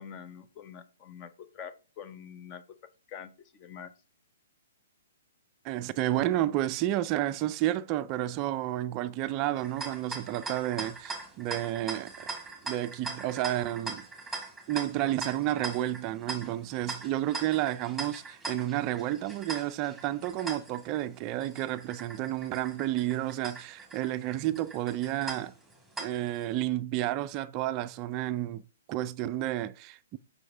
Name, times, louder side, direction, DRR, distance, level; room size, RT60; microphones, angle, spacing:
voice 1, 0.0-2.6 3.1-3.9, left 8 dB, 30° left, 0.7 m, -45 dB
voice 2, 5.6-12.3 12.6-14.1 14.7-25.5 26.0-28.6 28.9-30.2, right 14 dB, 30° right, 0.3 m, -31 dB
sound 1, 9.6-26.4, right 3 dB, ahead, 2.0 m, -41 dB
7.7 x 5.4 x 2.7 m
figure-of-eight pair, 120°, 0 cm